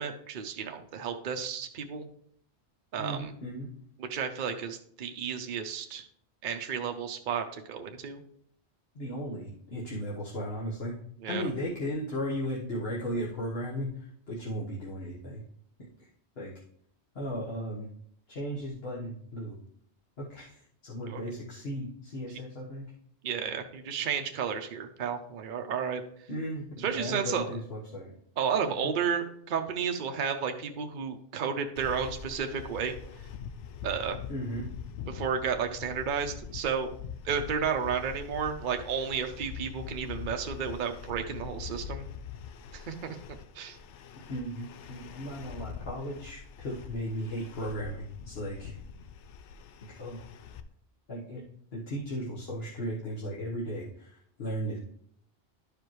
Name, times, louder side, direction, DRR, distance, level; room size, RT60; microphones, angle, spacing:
voice 1, 0.0-2.1 2.9-3.3 4.0-6.1 6.4-8.2 11.2-11.4 21.1-21.2 23.2-26.0 26.8-27.5 28.4-32.9 33.8-34.2 35.1-36.9 37.2-42.1 42.7-43.2 43.5-43.8, right 7 dB, 50° right, 4 dB, 0.8 m, -32 dB
voice 2, 3.0-3.7 8.9-10.9 11.3-15.4 16.0-16.1 16.4-16.5 17.1-17.9 18.3-19.6 20.2-22.9 26.3-28.1 34.3-34.7 44.3-48.7 50.0-50.2 51.1-51.4 51.7-54.8, equal, 60° left, -5 dB, 1.5 m, -36 dB
sound 1, 31.8-50.6, left 7 dB, 85° left, 0.9 m, -43 dB
11.5 x 5.1 x 3.1 m, 0.65 s
omnidirectional pair, 1.2 m